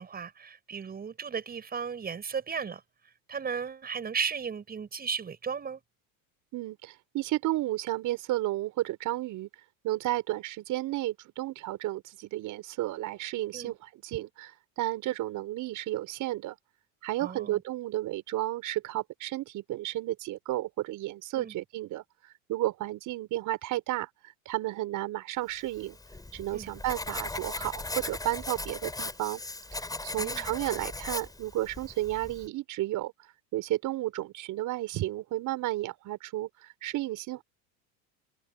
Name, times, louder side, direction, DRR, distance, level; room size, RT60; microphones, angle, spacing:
voice 1, 0.0-2.8 3.3-5.8 13.5-13.7 17.2-17.6 21.4-21.5 26.5-26.7 30.2-30.5, right 6 dB, 25° right, 7.1 m, -35 dB
voice 2, 6.5-9.5 9.8-16.6 17.0-24.1 24.5-26.0 26.3-29.4 30.0-33.1 33.5-37.4, right 16 dB, 50° right, 5.6 m, -32 dB
Writing, 25.7-32.5, left 2 dB, 10° left, 5.7 m, -38 dB
supercardioid pair, 130°, 40 cm